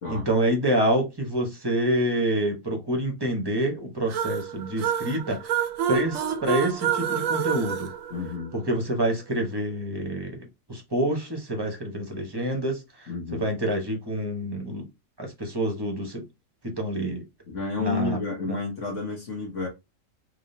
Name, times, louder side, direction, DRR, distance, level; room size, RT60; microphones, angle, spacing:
voice 1, 0.1-5.4 5.9-7.9 8.5-10.4 10.7-14.8 15.2-16.2 16.8-17.2 17.8-18.2 18.5-18.6, right 1 dB, 20° right, 0.8 m, -27 dB
sound 1, 4.1-8.8, right 9 dB, 80° right, 1.0 m, -28 dB
voice 2, 8.1-8.5 13.1-13.5 17.5-19.7, left 4 dB, 65° left, 1.5 m, -31 dB
3.6 x 3.2 x 2.6 m
omnidirectional pair, 1.4 m